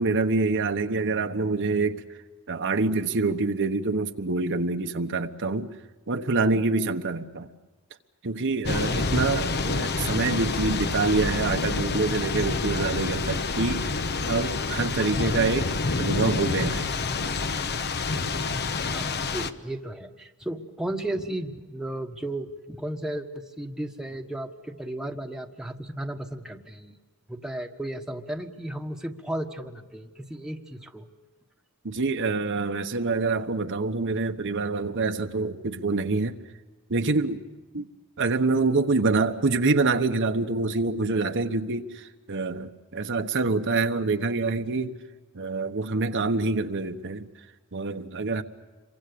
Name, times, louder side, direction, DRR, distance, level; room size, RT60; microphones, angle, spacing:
voice 1, 0.0-2.2 2.5-5.8 6.1-7.5 8.2-13.9 14.3-15.7 16.0-16.9 31.8-36.4 36.9-37.4 37.7-37.9 38.2-45.0 45.3-47.4 47.7-48.4, right 3 dB, 55° right, 1.1 m, -26 dB
Thunder / Rain, 8.6-19.5, left 3 dB, 50° left, 1.0 m, -28 dB
voice 2, 18.9-26.9 27.3-31.1, right 1 dB, 5° right, 1.4 m, -34 dB
28.0 x 24.0 x 6.9 m
head